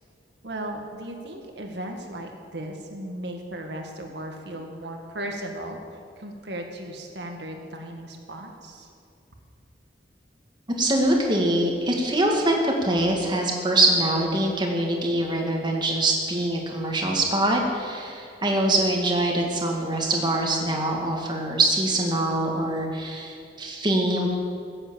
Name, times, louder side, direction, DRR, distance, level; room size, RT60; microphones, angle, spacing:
voice 1, 0.4-5.8 6.2-8.9, right 1 dB, 70° right, 3 dB, 1.9 m, -36 dB
voice 2, 10.8-24.4, right 1 dB, 25° right, 0 dB, 2.1 m, -24 dB
16.0 x 8.0 x 7.6 m, 2.3 s
head